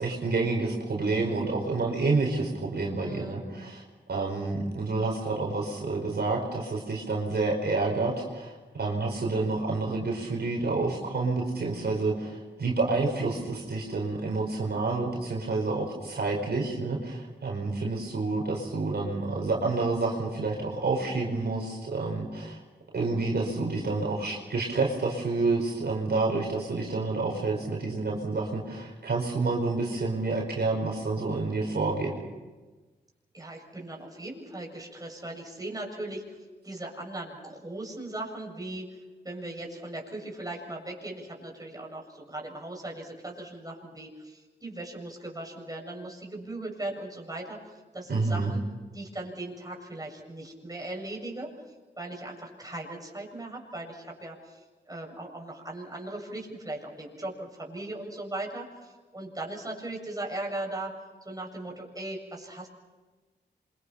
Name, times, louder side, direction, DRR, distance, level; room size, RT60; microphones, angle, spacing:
voice 1, 0.0-3.8 4.1-22.6 22.9-32.2 48.1-48.5, right 3 dB, 60° right, -1 dB, 5.2 m, -29 dB
voice 2, 3.0-3.4 33.3-36.4 36.6-48.6 48.9-51.5 52.0-60.9 61.2-62.7, right 2 dB, 20° right, 0 dB, 7.4 m, -38 dB
27.5 x 25.0 x 5.8 m, 1.3 s
cardioid pair, 60°, 18 cm